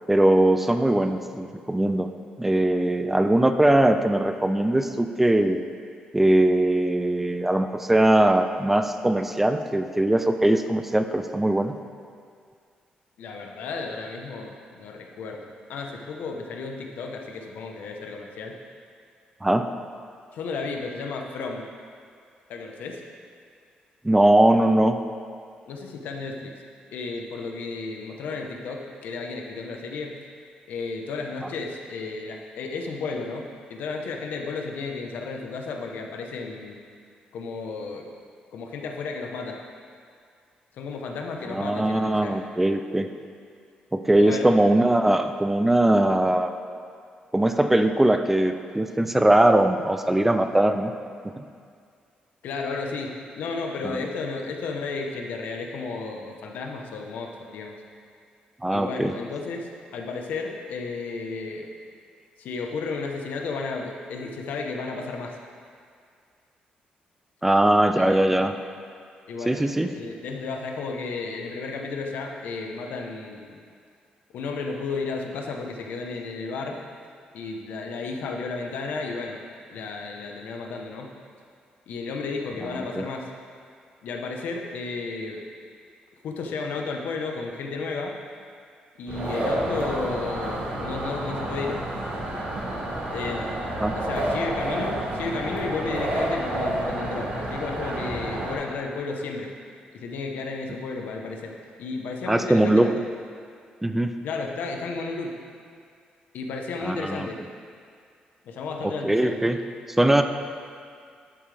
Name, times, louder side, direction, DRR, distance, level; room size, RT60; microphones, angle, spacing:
voice 1, 0.1-2.1 2.4-5.6 6.1-11.7 19.4-19.7 24.0-25.0 41.5-43.1 43.9-46.5 47.3-50.9 51.2-51.4 58.6-59.1 67.4-68.5 69.5-69.9 82.9-83.0 93.8-93.9 102.3-102.9 103.8-104.1 106.8-107.3 108.8-109.6 110.0-110.2, right 1 dB, 10° right, 8 dB, 0.4 m, -21 dB
voice 2, 13.2-18.6 20.3-21.7 22.5-23.0 25.7-26.6 26.9-30.2 30.7-36.8 37.3-38.1 38.5-39.6 40.7-42.5 44.2-44.5 52.4-57.8 58.7-61.7 62.4-65.4 68.0-68.4 69.3-73.6 74.3-76.8 77.3-79.4 79.7-81.1 81.9-83.3 84.0-85.4 86.2-88.2 89.0-91.8 93.1-93.5 93.9-99.5 99.9-103.0 104.2-105.4 106.3-107.4 108.4-109.5, left 4 dB, 80° left, 2 dB, 1.1 m, -33 dB
sound 1, 89.1-98.6, right 1 dB, 60° right, 2.3 m, -29 dB
11.5 x 8.6 x 3.5 m, 2.2 s
cardioid pair, 145°, 3 cm